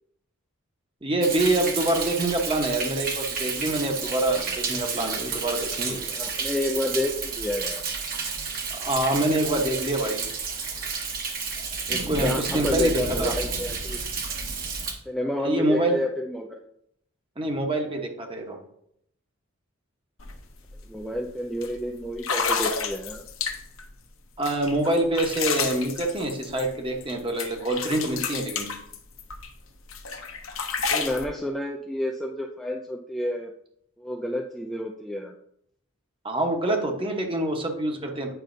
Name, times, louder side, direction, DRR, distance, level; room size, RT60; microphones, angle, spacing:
voice 1, 1.0-6.0 8.8-10.3 11.9-13.3 15.4-16.0 17.4-18.6 24.4-28.7 36.2-38.3, right 1 dB, 25° right, 2 dB, 1.0 m, -26 dB
Thunder, 1.2-14.9, right 5 dB, 45° right, 1.1 m, -31 dB
voice 2, 5.9-7.9 12.0-14.0 15.1-16.6 20.9-23.2 30.8-33.5 34.0-35.3, left 1 dB, ahead, 0 dB, 0.4 m, -30 dB
sound 1, 20.2-20.3 20.7-21.0 21.6-21.7 22.2-23.8 24.4-27.1 27.4-29.5 29.9-31.2, left 6 dB, 85° left, 0.9 m, -30 dB
9.0 x 5.4 x 2.6 m, 0.73 s
head